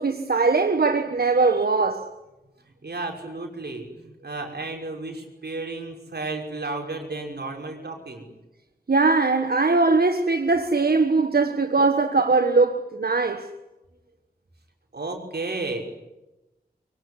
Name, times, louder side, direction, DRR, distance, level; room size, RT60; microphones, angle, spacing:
voice 1, 0.0-2.1 8.9-13.5, right 3 dB, 70° right, 1.5 m, -21 dB
voice 2, 2.8-8.3 14.9-15.8, right 3 dB, 90° right, 6.0 m, -33 dB
24.5 x 23.5 x 9.9 m
wide cardioid pair, 75°, 17 cm